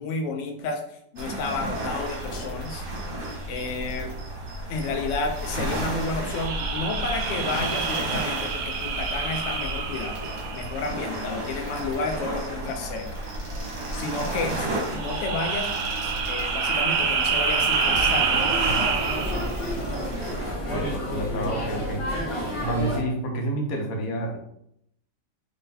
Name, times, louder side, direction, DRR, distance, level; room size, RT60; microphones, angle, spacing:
voice 1, 0.0-2.8 3.5-4.1 4.7-10.2 10.5-13.1 13.9-15.7 16.0-19.0, left 3 dB, 80° left, 3 dB, 0.6 m, -31 dB
sound 1, 1.2-20.5, right 1 dB, 55° right, 1.4 m, -33 dB
sound 2, 6.3-11.0 14.8-19.6, right 5 dB, 70° right, 1.2 m, -27 dB
sound 3, 17.1-23.0, equal, 30° left, 0.6 m, -31 dB
voice 2, 20.7-22.0 22.6-24.4, right 1 dB, 60° left, 2 dB, 1.1 m, -29 dB
3.8 x 3.3 x 2.7 m, 0.74 s
omnidirectional pair, 1.9 m